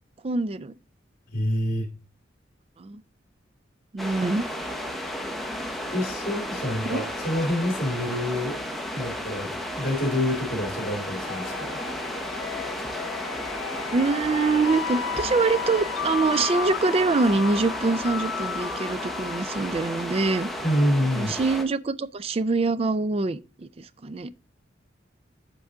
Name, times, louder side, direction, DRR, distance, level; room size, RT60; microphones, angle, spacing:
voice 1, 0.2-0.8 2.8-3.0 3.9-4.4 6.8-7.0 13.9-20.5 21.2-24.3, right 3 dB, 30° right, 0.4 m, -24 dB
voice 2, 1.3-1.9 5.9-8.5 8.9-11.8 20.6-21.4, left 1 dB, 55° left, 2.1 m, -27 dB
sound 1, 4.0-21.6, equal, ahead, 0.8 m, -33 dB
sound 2, 11.2-20.9, left 8 dB, 90° left, 0.4 m, -35 dB
7.9 x 4.7 x 3.7 m
head